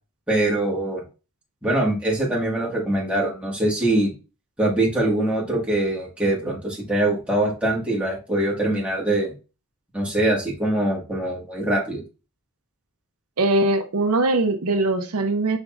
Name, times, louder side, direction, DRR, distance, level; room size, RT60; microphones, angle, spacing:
voice 1, 0.3-1.0 1.6-4.1 4.6-9.3 9.9-12.0, right 1 dB, 5° right, 1.6 m, -23 dB
voice 2, 13.4-15.6, right 2 dB, 80° right, 0.7 m, -21 dB
5.1 x 4.3 x 2.4 m
head